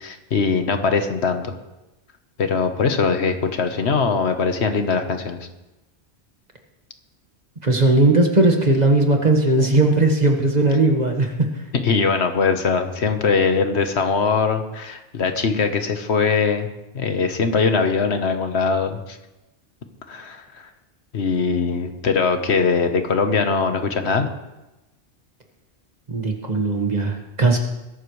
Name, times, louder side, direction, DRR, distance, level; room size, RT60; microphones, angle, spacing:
voice 1, 0.0-1.5 2.4-5.5 11.8-16.7 16.9-19.2 20.1-20.7 21.1-24.3, left 5 dB, 75° left, 7 dB, 1.4 m, -21 dB
voice 2, 7.6-11.5 26.1-27.6, right 2 dB, 40° right, 3 dB, 1.7 m, -18 dB
21.0 x 12.0 x 3.2 m, 0.99 s
omnidirectional pair, 1.1 m